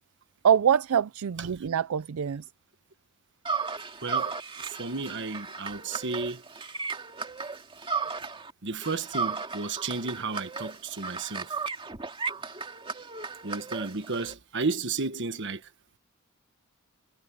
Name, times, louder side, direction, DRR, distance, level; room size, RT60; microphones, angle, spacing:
voice 1, 0.4-2.4, right 8 dB, 75° right, 0.4 m, -24 dB
sound 1, 3.4-8.5 8.8-14.3, right 5 dB, 25° right, 2.3 m, -35 dB
voice 2, 4.0-6.4 8.6-11.6 13.4-15.7, right 4 dB, 55° right, 1.4 m, -33 dB
head